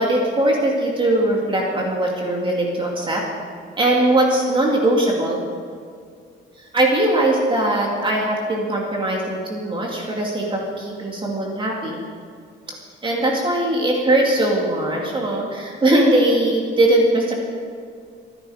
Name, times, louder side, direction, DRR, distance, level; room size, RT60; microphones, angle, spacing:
voice 1, 0.0-3.2 3.8-5.4 6.6-12.0 13.0-17.4, right 1 dB, 25° right, -2 dB, 2.4 m, -20 dB
24.5 x 10.5 x 5.1 m, 2.2 s
cardioid pair, 155°, 20 cm